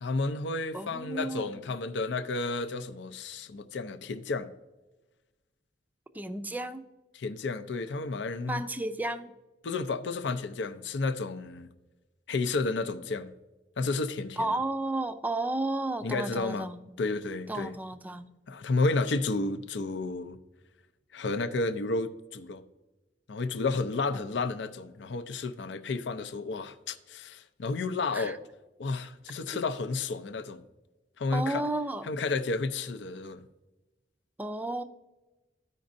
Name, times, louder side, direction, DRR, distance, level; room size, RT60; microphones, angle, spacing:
voice 1, 0.0-4.5 7.1-8.6 9.6-11.7 12.3-13.3 13.8-14.6 16.0-16.7 17.0-17.8 18.5-20.4 21.1-22.6 23.3-28.4 28.8-30.6 31.2-31.6 32.0-33.4, left 3 dB, 70° left, 0.5 m, -31 dB
voice 2, 0.7-1.7 6.1-6.8 8.5-9.3 14.4-17.0 17.5-18.3 24.1-24.2 28.1-28.4 31.3-32.1 34.4-34.8, right 2 dB, 10° right, 0.4 m, -33 dB
14.0 x 5.1 x 2.6 m
head